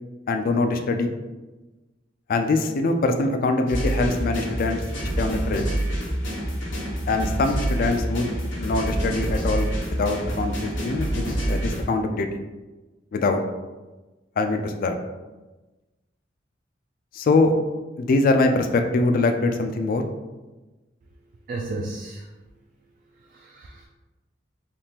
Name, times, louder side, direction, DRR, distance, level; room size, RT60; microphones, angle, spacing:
voice 1, 0.3-1.2 2.3-4.8 5.2-5.6 7.1-12.4 13.1-13.4 14.4-15.0 17.1-17.5 18.0-20.0, left 3 dB, 50° left, 6 dB, 0.3 m, -23 dB
sound 1, 3.7-11.8, right 1 dB, 90° left, 1.0 m, -27 dB
voice 2, 21.5-22.2 23.3-23.9, right 2 dB, 45° right, 0 dB, 0.3 m, -33 dB
3.5 x 2.4 x 2.8 m, 1.1 s
head